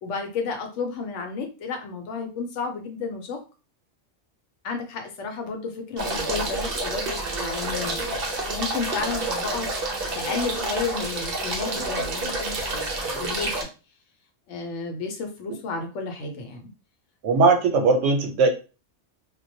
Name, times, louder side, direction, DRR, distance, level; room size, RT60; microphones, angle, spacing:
voice 1, 0.0-3.4 4.6-8.1 8.5-9.7 10.1-13.7 14.5-16.6, left 4 dB, 80° left, 4 dB, 1.0 m, -32 dB
sound 1, 6.0-13.6, right 2 dB, 60° right, 0.8 m, -29 dB
voice 2, 17.2-18.5, right 4 dB, 85° right, 4 dB, 1.0 m, -19 dB
2.2 x 2.2 x 2.6 m, 0.32 s
omnidirectional pair, 1.2 m